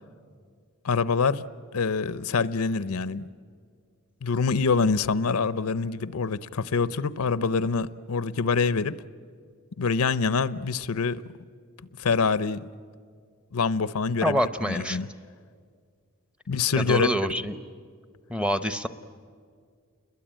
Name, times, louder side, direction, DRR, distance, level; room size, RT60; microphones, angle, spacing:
voice 1, 0.8-1.4 1.7-3.3 4.2-9.0 9.8-11.2 12.0-12.7 13.5-15.1 16.5-17.1, left 5 dB, 80° left, 15 dB, 0.6 m, -25 dB
voice 2, 14.2-15.0 16.8-17.6 18.3-18.9, equal, 5° right, 10 dB, 0.7 m, -26 dB
29.5 x 21.5 x 9.0 m, 2.1 s
head